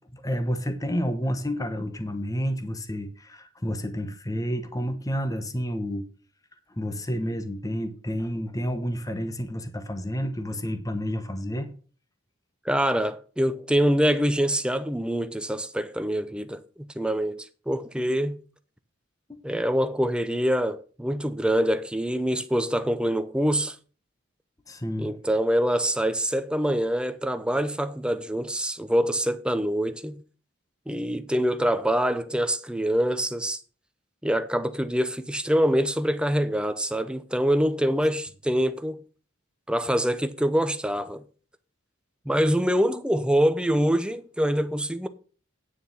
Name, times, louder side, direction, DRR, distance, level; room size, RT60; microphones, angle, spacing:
voice 1, 0.1-6.1 6.8-11.7 24.7-25.1, equal, 15° left, 1.0 m, -30 dB
voice 2, 12.7-18.4 19.4-23.8 25.0-30.2 30.9-33.6 34.2-39.0 39.7-41.2 42.3-45.1, equal, 5° right, 0.6 m, -25 dB
9.5 x 6.8 x 5.4 m
head